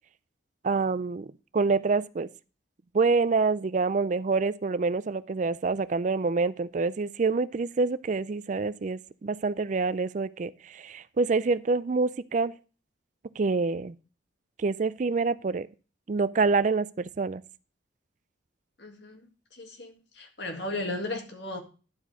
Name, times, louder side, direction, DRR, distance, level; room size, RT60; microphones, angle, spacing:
voice 1, 0.6-1.3 1.5-2.3 2.9-12.5 13.4-13.9 14.6-15.7 16.1-17.4, right 4 dB, 40° right, 0.4 m, -26 dB
voice 2, 18.8-19.2 19.6-21.6, left 2 dB, 60° left, 2.0 m, -35 dB
11.0 x 5.0 x 4.9 m
head